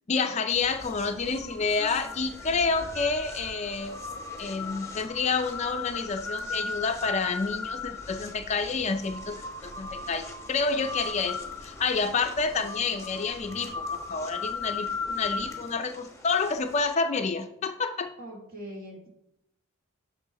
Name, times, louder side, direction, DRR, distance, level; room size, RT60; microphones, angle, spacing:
voice 1, 0.1-4.0 4.4-18.1, left 4 dB, 35° left, 8 dB, 0.4 m, -29 dB
sound 1, 0.5-16.9, left 4 dB, 15° left, 1.0 m, -37 dB
voice 2, 18.2-19.1, equal, 45° right, 1 dB, 1.6 m, -41 dB
7.0 x 5.6 x 4.0 m, 0.79 s
head